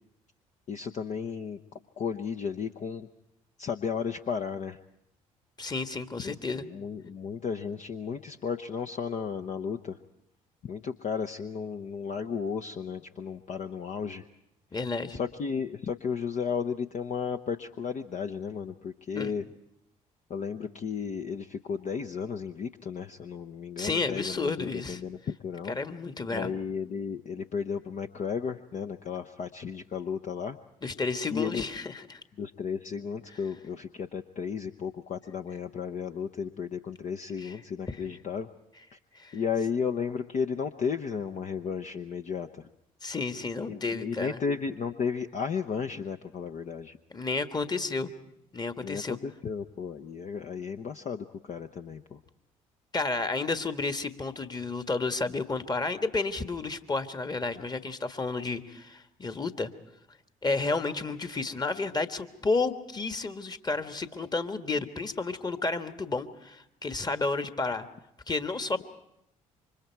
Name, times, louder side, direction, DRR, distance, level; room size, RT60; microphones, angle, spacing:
voice 1, 0.7-1.6 2.0-3.1 3.6-4.8 6.2-10.0 10.6-14.3 15.1-19.5 20.3-25.8 26.3-30.6 31.3-31.7 32.4-38.5 38.9-39.0 39.3-42.7 43.7-47.0 48.8-52.2, left 6 dB, 45° left, 6 dB, 0.9 m, -34 dB
voice 2, 5.6-6.6 14.7-15.2 19.1-19.3 23.8-25.0 25.7-26.5 30.8-32.2 37.4-37.5 37.9-38.0 39.1-39.4 43.0-44.4 47.1-48.1 48.5-49.2 52.9-59.7 60.4-67.9 68.3-68.8, left 3 dB, 25° left, 9 dB, 1.5 m, -31 dB
28.0 x 25.0 x 4.6 m, 0.79 s
hypercardioid pair, 50°, 17 cm